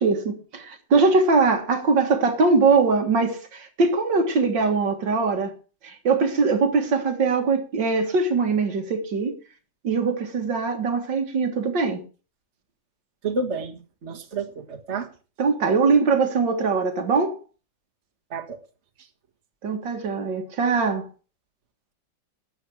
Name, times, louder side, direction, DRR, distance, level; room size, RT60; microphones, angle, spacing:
voice 1, 0.0-5.5 5.8-9.4 9.8-12.0 15.4-17.4 19.6-21.1, right 4 dB, 75° right, 2.4 m, -22 dB
voice 2, 13.2-15.1 18.3-18.6, right 3 dB, 40° right, 1.9 m, -30 dB
12.5 x 8.3 x 6.1 m
omnidirectional pair, 2.0 m